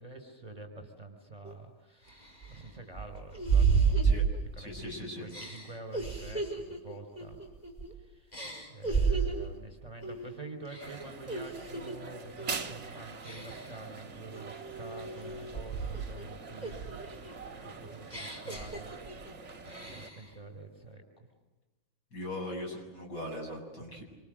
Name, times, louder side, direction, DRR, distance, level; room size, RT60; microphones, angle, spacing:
voice 1, 0.0-4.1 4.5-7.4 8.0-8.4 8.7-17.3 17.6-19.5 19.8-21.0, right 2 dB, 20° right, 6 dB, 5.1 m, -47 dB
sound 1, 1.4-1.5 2.1-4.8 5.3-7.9 8.3-9.6 10.0-10.3 10.7-12.0 12.4-12.7 13.2-13.8 14.3-16.2 16.6-19.3 19.7-20.3, right 5 dB, 20° left, 5.3 m, -32 dB
voice 2, 4.6-5.3 22.1-24.0, left 1 dB, 55° left, 0 dB, 8.1 m, -39 dB
sound 2, 10.8-20.1, right 4 dB, 40° right, 1.8 m, -44 dB
27.0 x 27.0 x 7.8 m, 1.2 s
omnidirectional pair, 2.1 m